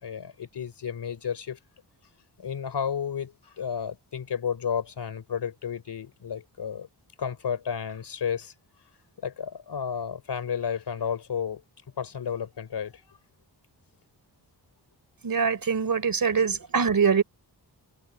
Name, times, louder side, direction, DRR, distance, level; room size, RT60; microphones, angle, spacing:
voice 1, 0.0-1.6 2.4-6.9 7.2-8.5 9.2-11.6 12.0-12.9, left 7 dB, 75° left, 3.5 m, -32 dB
voice 2, 15.2-17.2, right 6 dB, 55° right, 3.7 m, -23 dB
wide cardioid pair, 130°, 41 cm